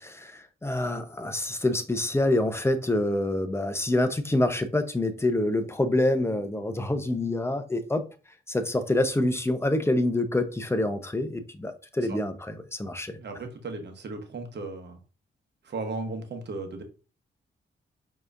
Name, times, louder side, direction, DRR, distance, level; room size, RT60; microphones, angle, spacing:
voice 1, 0.0-8.1 8.5-13.2, left 1 dB, 10° left, 0.8 m, -26 dB
voice 2, 13.2-15.0 15.6-16.8, right 3 dB, 55° right, 1.1 m, -36 dB
4.7 x 3.0 x 2.5 m
supercardioid pair, 50°, 21 cm